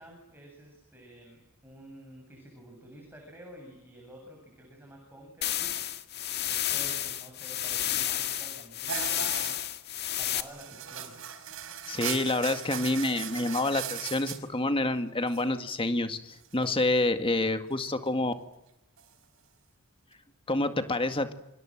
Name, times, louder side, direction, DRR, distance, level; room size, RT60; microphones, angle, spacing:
voice 1, 0.0-5.9 6.5-9.6 9.8-11.2, equal, 10° right, 1 dB, 7.9 m, -50 dB
sound 1, 5.4-10.4, left 12 dB, 45° left, 1.9 m, -31 dB
sound 2, 8.9-9.6 10.0-10.1 10.4-14.4 15.3-15.4 16.5-16.6 19.0-19.1, right 8 dB, 60° right, 4.8 m, -38 dB
voice 2, 11.9-18.3 20.5-21.3, left 2 dB, 25° left, 8 dB, 2.0 m, -28 dB
28.5 x 26.0 x 7.7 m, 0.89 s
head